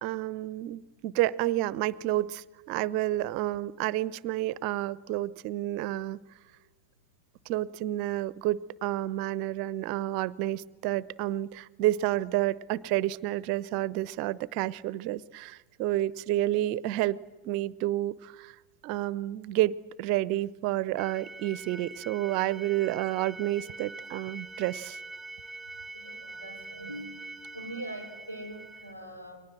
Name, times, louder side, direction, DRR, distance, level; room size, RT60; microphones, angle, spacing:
voice 1, 0.0-6.2 7.5-17.2 17.4-18.6 18.8-25.0, right 15 dB, 45° right, 0.7 m, -30 dB
sound 1, 21.0-28.9, right 2 dB, 5° right, 2.4 m, -44 dB
voice 2, 25.9-29.4, right 1 dB, 85° left, 5.4 m, -42 dB
29.5 x 24.0 x 7.7 m
figure-of-eight pair, 90°, 0 cm